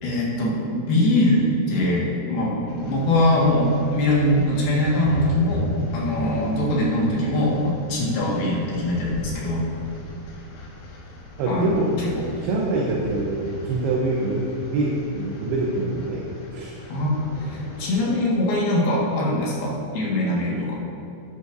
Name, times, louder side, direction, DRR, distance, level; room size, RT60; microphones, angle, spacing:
voice 1, 0.0-9.7 11.5-12.3 12.9-13.0 16.9-20.8, left 1 dB, 65° left, -5 dB, 3.4 m, -22 dB
sound 1, 2.7-18.0, equal, 80° left, 3.7 m, -36 dB
voice 2, 11.4-12.0 12.4-16.3 16.5-16.8, right 2 dB, 75° right, -2 dB, 2.7 m, -25 dB
12.0 x 11.5 x 2.6 m, 2.6 s
omnidirectional pair, 5.2 m